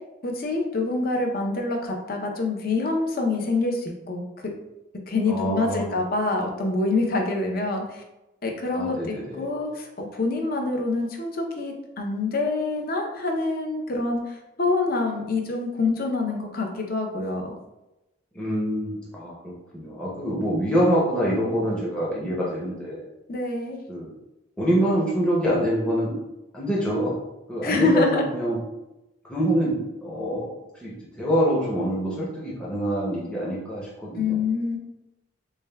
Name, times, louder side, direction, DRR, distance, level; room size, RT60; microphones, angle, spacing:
voice 1, 0.2-4.5 5.1-8.0 8.4-17.5 23.3-23.8 27.6-28.2 34.1-34.8, left 3 dB, 45° left, 2 dB, 0.6 m, -26 dB
voice 2, 5.3-5.9 8.7-9.5 18.3-23.1 23.9-24.1 24.6-26.2 26.5-27.1 27.5-28.6 29.3-30.5 30.8-34.4, equal, 5° left, -7 dB, 0.6 m, -25 dB
6.6 x 2.2 x 2.2 m, 0.96 s
head